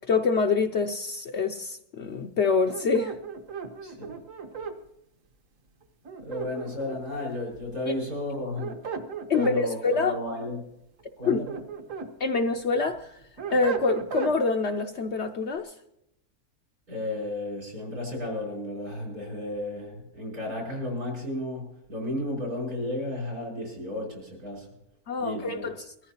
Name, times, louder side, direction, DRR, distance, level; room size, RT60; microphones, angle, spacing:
voice 1, 0.1-3.1 9.3-10.2 11.3-11.5 12.2-13.2 13.5-15.7 25.1-25.8, left 4 dB, 60° left, 0.8 m, -26 dB
sound 1, 2.7-4.8 6.1-7.2 8.3-9.6 11.0-12.1 12.6-14.4, right 6 dB, 60° right, 1.5 m, -36 dB
voice 2, 3.8-4.2 6.2-8.8 9.3-10.6 11.2-11.5 16.9-24.7 25.2-25.7, left 1 dB, 75° right, 6.1 m, -33 dB
22.0 x 14.0 x 2.9 m
omnidirectional pair, 1.6 m